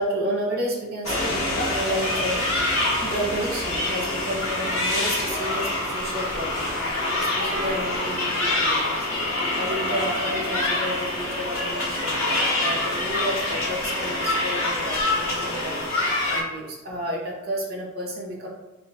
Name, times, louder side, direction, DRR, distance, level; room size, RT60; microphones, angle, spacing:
voice 1, 0.0-2.4 3.0-18.5, equal, 50° right, -2 dB, 0.9 m, -31 dB
sound 1, 1.0-16.4, left 2 dB, 70° left, 0.8 m, -25 dB
3.5 x 2.9 x 2.7 m, 1.1 s
head